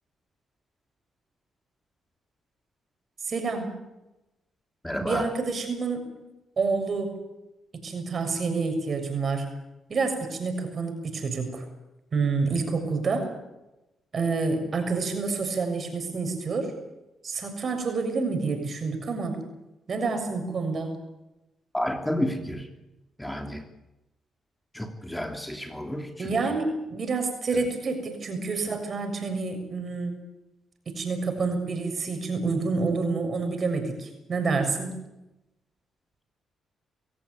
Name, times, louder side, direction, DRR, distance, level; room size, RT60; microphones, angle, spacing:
voice 1, 3.2-3.7 5.0-6.1 6.6-7.1 7.7-9.5 9.9-11.6 12.1-13.3 14.1-16.7 17.2-19.4 19.9-20.9 26.2-30.1 30.9-35.0, right 4 dB, 50° right, 5 dB, 6.9 m, -28 dB
voice 2, 4.8-5.3 21.7-22.7 23.2-23.6 24.7-26.4, left 1 dB, 5° left, 5 dB, 3.0 m, -31 dB
24.0 x 16.0 x 9.6 m, 0.97 s
cardioid pair, 70°, 0 cm